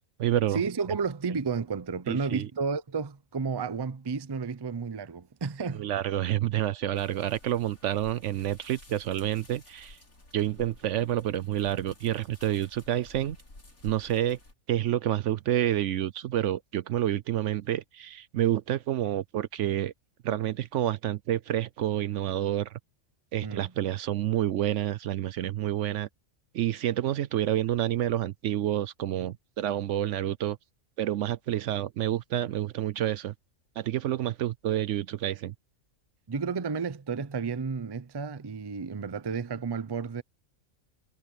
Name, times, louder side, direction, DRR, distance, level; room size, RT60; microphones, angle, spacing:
voice 1, 0.0-0.6 2.1-2.5 5.7-10.0 10.3-13.4 13.8-14.4 14.7-19.9 20.2-22.7 23.3-26.1 26.5-30.6 31.0-33.3 33.8-35.5, right 12 dB, 70° right, 0.8 m, -28 dB
voice 2, 0.5-5.9 23.4-23.7 36.3-40.2, right 5 dB, 30° right, 0.5 m, -32 dB
sound 1, 6.9-14.5, left 2 dB, 85° left, 5.2 m, -52 dB
omnidirectional pair, 1.4 m